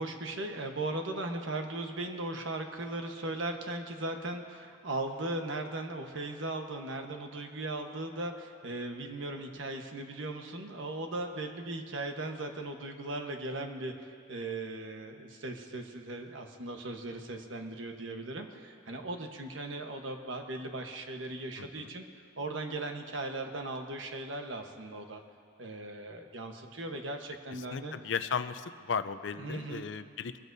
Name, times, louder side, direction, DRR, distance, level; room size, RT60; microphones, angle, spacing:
voice 1, 0.0-13.9 14.3-22.0 22.4-25.2 25.6-27.9 29.4-29.9, right 2 dB, 75° right, 4 dB, 1.2 m, -38 dB
voice 2, 21.6-21.9 27.5-30.4, left 6 dB, 65° left, 11 dB, 0.5 m, -36 dB
22.5 x 14.5 x 2.7 m, 2.2 s
head